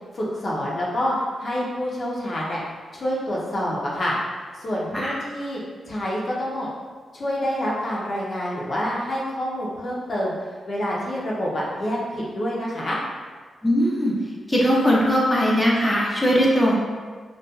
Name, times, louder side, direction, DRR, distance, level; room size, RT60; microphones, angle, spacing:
voice 1, 0.1-2.6 2.9-4.2 4.6-5.6 5.9-6.7 7.1-10.3 10.7-13.0, equal, 50° left, -5 dB, 0.5 m, -27 dB
voice 2, 13.6-14.2 14.5-16.7, equal, 10° left, -5 dB, 0.6 m, -19 dB
2.7 x 2.2 x 2.2 m, 1.5 s
cardioid pair, 70°, 0 cm